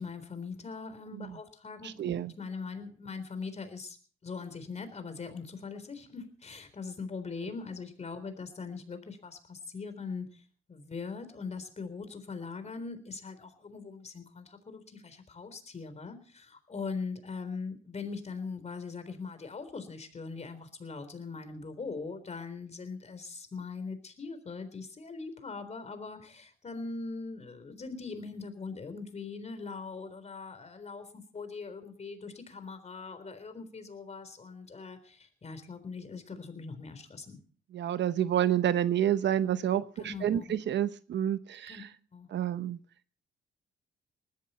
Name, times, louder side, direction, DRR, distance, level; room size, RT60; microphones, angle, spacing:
voice 1, 0.0-4.0 4.2-10.4 10.7-37.4 40.0-40.6 41.7-41.8 42.1-42.3, left 4 dB, 35° left, 10 dB, 3.9 m, -41 dB
voice 2, 1.8-2.3 37.7-41.9 42.3-42.8, right 10 dB, 65° right, 13 dB, 1.0 m, -29 dB
19.5 x 14.0 x 4.3 m, 0.41 s
cardioid pair, 90°, 20 cm